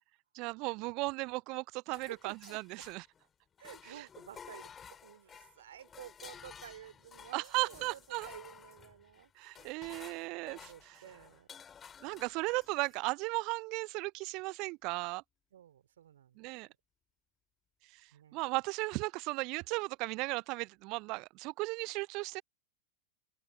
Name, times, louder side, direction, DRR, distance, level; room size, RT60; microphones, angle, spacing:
voice 1, 0.3-3.0 3.9-4.1 7.3-8.3 9.4-11.0 12.0-15.2 16.4-16.7 17.9-22.4, right 25 dB, 40° right, 0.4 m, -36 dB
sound 1, 1.9-3.3 3.6-13.0, left 7 dB, 20° left, 3.4 m, -54 dB
voice 2, 1.9-2.8 3.6-10.0 10.4-11.5 15.5-16.4 18.1-18.4, right 10 dB, 60° right, 2.8 m, -52 dB
figure-of-eight pair, 90°, 0 cm